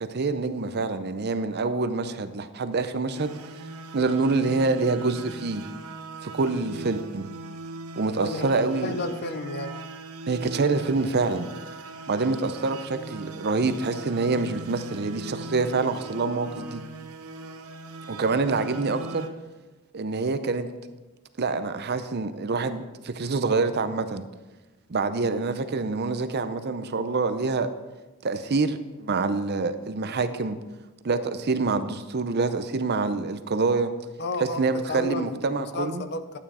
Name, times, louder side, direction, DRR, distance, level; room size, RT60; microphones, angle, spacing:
voice 1, 0.0-3.4 3.9-5.6 6.2-7.3 8.0-8.9 10.3-11.5 12.1-16.8 18.1-19.3 19.9-20.7 21.4-24.2 24.9-27.7 28.2-30.6 31.0-33.9 34.4-36.0, right 3 dB, 50° right, 11 dB, 0.6 m, -26 dB
sound 1, 3.1-19.3, right 2 dB, 80° right, 0.9 m, -40 dB
voice 2, 8.2-8.6 8.8-9.8 34.2-36.4, left 2 dB, 50° left, 11 dB, 0.6 m, -32 dB
11.5 x 8.9 x 4.2 m, 1.2 s
head